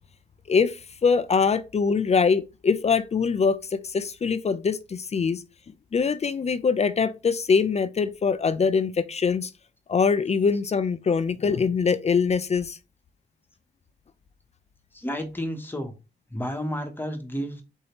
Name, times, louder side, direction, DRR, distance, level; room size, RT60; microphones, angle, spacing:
voice 1, 0.5-5.4 5.9-9.5 9.9-12.8, left 5 dB, 35° left, 0.4 m, -23 dB
voice 2, 14.9-15.9 16.3-17.6, equal, 10° left, 0.9 m, -31 dB
6.3 x 2.8 x 2.9 m
wide cardioid pair, 115°, 19 cm